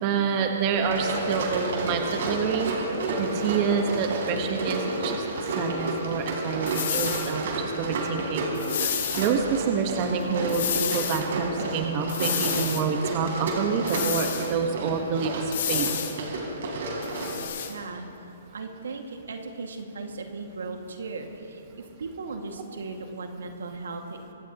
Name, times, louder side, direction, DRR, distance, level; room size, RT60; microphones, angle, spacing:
voice 1, 0.0-2.8 3.2-5.2 5.5-8.5 9.2-15.9, right 6 dB, 35° right, 3 dB, 1.4 m, -27 dB
Run, 0.8-17.5, right 2 dB, 60° right, 3.9 m, -31 dB
sound 1, 6.7-7.3 8.5-9.3 10.5-11.2 12.1-12.9 13.9-14.5 15.5-16.2 17.0-17.7, left 9 dB, 60° left, 1.6 m, -30 dB
voice 2, 17.7-18.1 18.5-24.3, right 3 dB, 85° right, 3 dB, 2.0 m, -37 dB
24.0 x 15.5 x 3.0 m, 3.0 s
hypercardioid pair, 145°, 0 cm